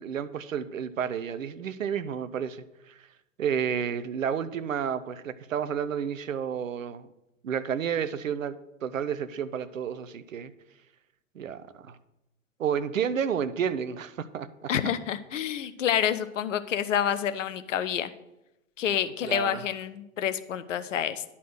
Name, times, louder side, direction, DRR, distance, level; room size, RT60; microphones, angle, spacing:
voice 1, 0.0-2.9 3.4-7.1 7.4-8.5 8.8-10.5 11.4-12.0 12.6-14.7 19.2-19.6, right 8 dB, 75° right, 13 dB, 0.6 m, -31 dB
voice 2, 14.7-18.1 18.8-21.2, left 9 dB, 70° left, 12 dB, 0.7 m, -28 dB
11.0 x 4.2 x 6.4 m, 0.92 s
figure-of-eight pair, 90°, 40 cm